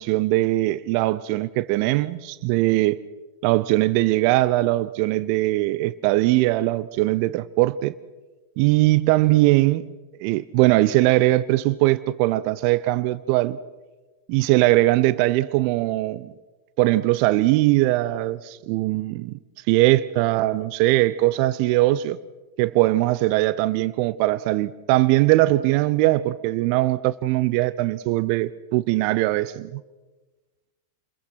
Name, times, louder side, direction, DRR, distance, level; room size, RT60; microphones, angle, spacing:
voice 1, 0.0-3.0 3.4-7.9 8.6-9.9 10.2-13.6 14.3-16.3 16.8-19.3 19.7-22.2 22.6-29.8, right 18 dB, 45° right, 0.7 m, -20 dB
30.0 x 22.0 x 5.9 m
figure-of-eight pair, 90°, 0 cm